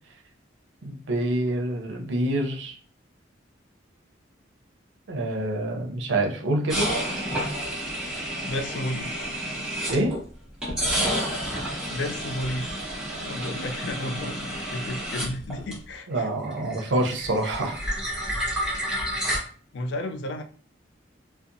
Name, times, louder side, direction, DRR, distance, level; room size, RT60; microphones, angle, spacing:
voice 1, 0.8-2.8 5.1-6.9 9.9-10.2 16.1-17.8, right 1 dB, 75° right, 2 dB, 0.5 m, -26 dB
sound 1, 6.7-10.2 10.6-16.2 16.4-19.4, equal, 5° right, 0.8 m, -30 dB
voice 2, 8.4-9.3 11.9-12.7 13.2-16.3 19.7-20.4, left 1 dB, 65° left, 6 dB, 0.3 m, -32 dB
2.7 x 2.0 x 2.5 m, 0.43 s
head